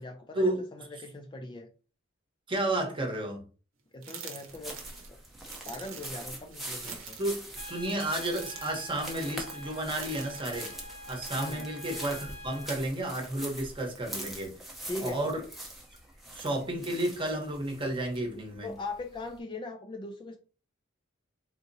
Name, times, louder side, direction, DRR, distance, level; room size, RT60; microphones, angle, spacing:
voice 1, 0.0-1.7 3.9-4.8 5.1-5.2 5.6-7.2 11.4-11.7 14.9-15.4 18.6-20.4, left 2 dB, 25° left, 4 dB, 0.4 m, -40 dB
voice 2, 2.5-3.4 7.2-10.7 11.1-14.5 15.0-15.4 16.3-18.7, right 1 dB, 25° right, 2 dB, 0.9 m, -32 dB
sound 1, 4.0-11.1, right 6 dB, 75° right, 0.8 m, -46 dB
sound 2, 4.5-19.4, right 1 dB, ahead, 0.7 m, -44 dB
Trumpet, 7.6-12.8, left 1 dB, 75° left, 1.3 m, -46 dB
3.7 x 2.8 x 2.6 m, 0.36 s
head